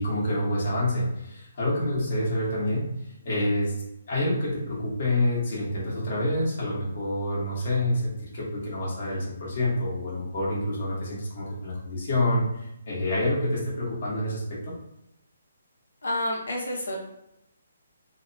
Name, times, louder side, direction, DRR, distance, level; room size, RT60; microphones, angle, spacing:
voice 1, 0.0-2.9 3.2-3.7 4.1-14.7, left 1 dB, 55° left, -6 dB, 1.1 m, -27 dB
voice 2, 16.0-17.0, left 1 dB, 80° left, -1 dB, 0.9 m, -29 dB
2.7 x 2.1 x 2.6 m, 0.83 s
hypercardioid pair, 150°, 0 cm